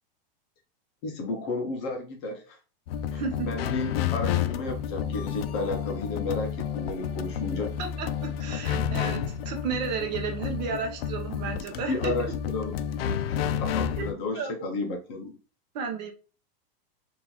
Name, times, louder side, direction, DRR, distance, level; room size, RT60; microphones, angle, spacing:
voice 1, 1.0-2.6 3.1-7.7 9.2-9.3 11.7-12.8 13.3-15.4, left 3 dB, 30° left, 0.6 m, -33 dB
sound 1, 2.9-14.1, left 9 dB, 75° left, 0.5 m, -30 dB
voice 2, 3.1-3.5 7.8-12.3 14.0-14.1 14.3-14.7 15.7-16.1, right 5 dB, 45° right, 0.8 m, -33 dB
3.6 x 2.5 x 2.9 m
supercardioid pair, 170°, 30 cm